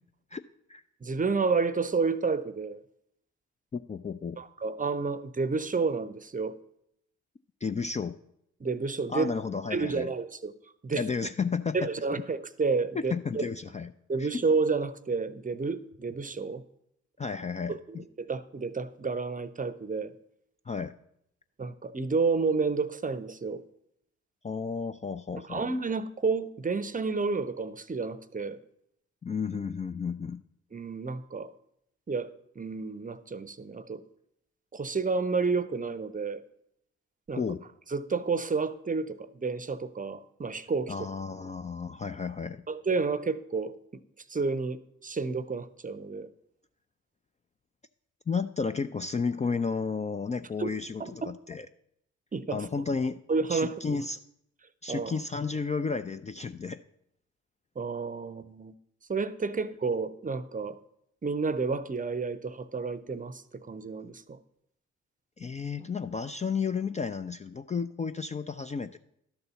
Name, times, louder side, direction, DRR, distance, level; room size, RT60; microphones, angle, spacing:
voice 1, 1.0-2.8 4.4-6.5 8.6-9.3 9.7-10.5 10.8-11.0 11.7-13.4 14.1-16.6 17.7-20.1 21.6-23.6 25.5-28.6 30.7-31.5 32.1-34.0 34.7-36.4 37.3-37.4 37.9-40.9 42.7-44.0 44.3-46.3 50.6-50.7 51.0-51.3 52.3-52.6 53.3-54.0 54.9-55.1 57.8-58.7 59.1-60.8 61.2-64.4, right 4 dB, 25° right, 15 dB, 0.7 m, -30 dB
voice 2, 3.7-4.4 7.6-8.2 9.1-10.1 10.9-11.9 12.9-13.9 14.2-14.4 17.2-18.0 20.7-21.0 24.4-25.7 29.2-30.4 37.4-37.6 40.9-42.6 48.3-51.7 52.5-53.2 53.5-54.2 54.8-56.8 65.4-69.0, left 5 dB, 20° left, 10 dB, 0.4 m, -32 dB
11.5 x 4.0 x 6.8 m, 0.75 s
hypercardioid pair, 40°, 33 cm